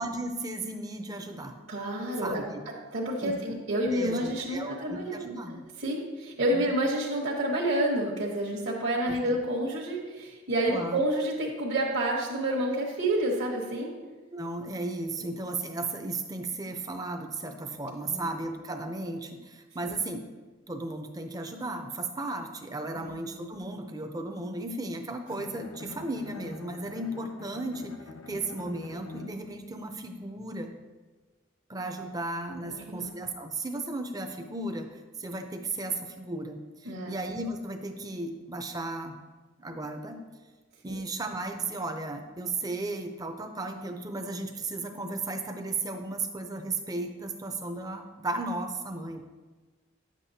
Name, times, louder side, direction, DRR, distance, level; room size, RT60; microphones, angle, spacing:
voice 1, 0.0-1.6 2.2-2.6 3.2-3.3 3.9-5.6 6.5-6.7 9.0-9.4 10.7-11.0 14.3-20.3 20.7-27.9 28.3-30.7 31.7-39.2 39.6-40.2 40.8-49.2, right 2 dB, 20° right, 5 dB, 0.5 m, -35 dB
voice 2, 1.7-2.4 2.9-13.9 18.0-18.2 19.8-19.9 22.9-23.1 32.6-33.1 36.8-37.2 40.9-41.0, right 1 dB, 60° right, -5 dB, 1.1 m, -29 dB
Bowed string instrument, 25.3-29.6, left 3 dB, 65° left, 0.5 m, -46 dB
9.1 x 7.4 x 2.7 m, 1.3 s
head